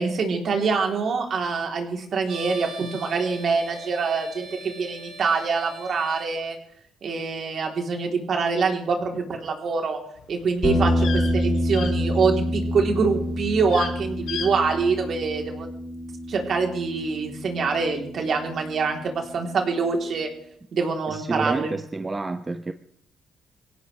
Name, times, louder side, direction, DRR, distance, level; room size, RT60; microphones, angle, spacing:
voice 1, 0.0-6.6 7.0-10.0 10.3-15.7 16.3-20.3 20.7-21.7, right 4 dB, 60° right, 2 dB, 3.3 m, -25 dB
sound 1, 2.2-6.3, right 2 dB, 85° right, 4.6 m, -41 dB
sound 2, 10.2-12.6 12.9-13.2 13.6-13.9 14.3-14.5 14.8-14.9, left 7 dB, 80° left, 3.7 m, -35 dB
sound 3, 10.6-19.0, equal, 30° left, 5.2 m, -27 dB
voice 2, 21.1-22.7, right 3 dB, 20° right, 8 dB, 0.8 m, -29 dB
23.5 x 17.0 x 3.3 m, 0.65 s
cardioid pair, 90°, 0 cm